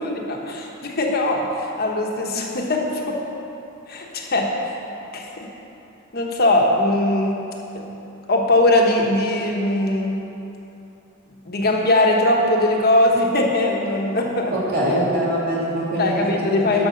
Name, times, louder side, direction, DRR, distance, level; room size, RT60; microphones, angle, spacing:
voice 1, 0.0-3.2 3.9-4.8 5.1-5.5 6.1-7.4 7.7-7.9 8.3-10.2 11.4-14.5 16.0-16.9, left 1 dB, 50° left, 0 dB, 1.1 m, -20 dB
voice 2, 14.5-16.9, right 1 dB, 50° right, -6 dB, 2.5 m, -23 dB
11.0 x 6.0 x 6.5 m, 2.9 s
head